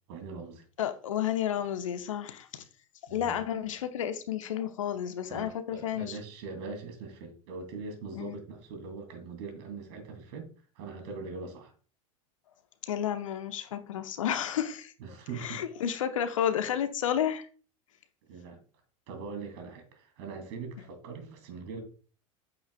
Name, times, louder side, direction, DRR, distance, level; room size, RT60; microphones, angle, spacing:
voice 1, 0.1-0.6 3.1-3.4 5.3-10.5 10.8-11.7 15.0-15.6 18.3-18.6 19.1-21.8, right 4 dB, 50° right, 2.6 m, -41 dB
voice 2, 0.8-2.6 3.1-6.2 8.1-8.4 12.8-14.9 15.3-17.5, left 9 dB, 65° left, 0.9 m, -31 dB
9.1 x 8.5 x 2.3 m
figure-of-eight pair, 80°, 18 cm